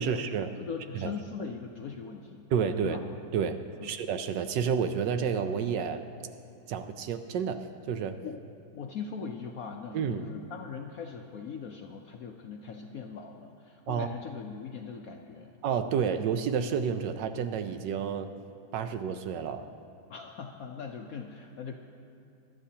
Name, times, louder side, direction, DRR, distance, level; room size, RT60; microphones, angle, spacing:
voice 1, 0.0-0.5 0.9-1.1 2.5-3.0 3.3-6.0 6.7-8.2 9.9-10.2 13.9-14.1 15.6-18.3 18.7-19.7, right 7 dB, 75° right, 9 dB, 1.1 m, -30 dB
voice 2, 0.5-2.4 2.8-3.0 3.8-3.9 8.2-8.4 8.7-15.6 20.1-21.8, left 6 dB, 70° left, 3 dB, 0.8 m, -40 dB
22.5 x 12.0 x 2.8 m, 2.7 s
omnidirectional pair, 2.1 m